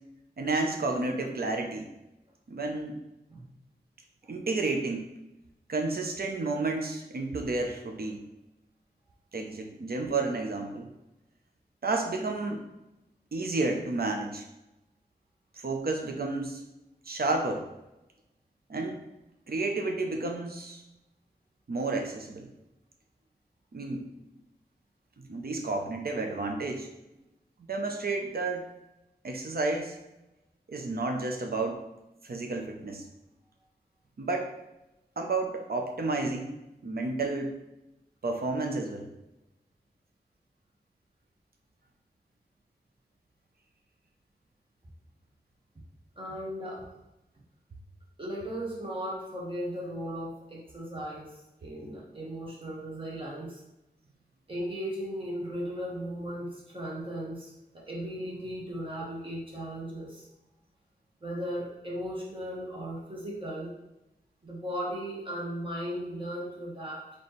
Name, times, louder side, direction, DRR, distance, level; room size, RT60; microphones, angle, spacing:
voice 1, 0.4-1.9 2.5-3.0 4.3-5.1 5.7-8.2 9.3-10.9 11.8-12.7 13.3-14.4 15.6-16.6 17.1-17.6 18.7-19.0 19.5-20.8 21.7-22.5 23.7-24.1 25.2-26.9 27.7-28.6 29.2-30.0 30.7-31.8 32.2-33.0 34.2-34.5 35.2-36.6 36.8-37.6 38.2-39.1, right 3 dB, 65° right, 3 dB, 0.7 m, -31 dB
voice 2, 46.2-46.9 48.2-53.6 54.5-60.3 61.2-63.7 64.4-67.0, equal, 30° right, -4 dB, 1.4 m, -37 dB
4.2 x 3.0 x 3.2 m, 0.94 s
wide cardioid pair, 80°, 17 cm